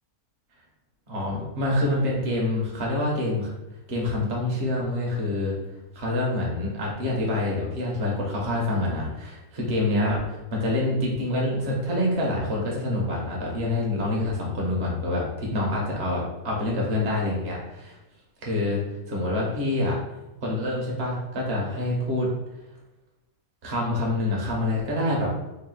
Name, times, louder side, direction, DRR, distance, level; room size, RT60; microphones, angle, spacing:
voice 1, 1.1-3.5 3.9-5.6 5.9-18.0 18.4-18.8 19.1-20.0 20.4-22.3 23.6-25.3, left 1 dB, 50° right, -3 dB, 1.2 m, -26 dB
3.3 x 2.6 x 3.9 m, 1.0 s
omnidirectional pair, 1.5 m